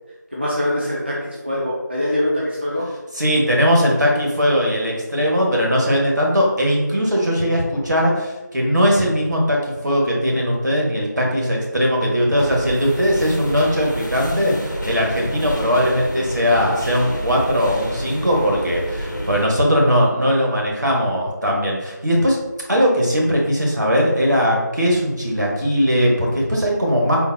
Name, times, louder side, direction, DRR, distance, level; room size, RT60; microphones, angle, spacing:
voice 1, 0.3-2.9, left 1 dB, 35° right, -6 dB, 0.4 m, -23 dB
voice 2, 3.1-22.4 22.7-27.2, equal, 65° right, -2 dB, 1.1 m, -19 dB
sound 1, 12.4-19.5, equal, 70° left, 0.8 m, -29 dB
3.8 x 2.4 x 2.6 m, 1.1 s
figure-of-eight pair, 175°, 10 cm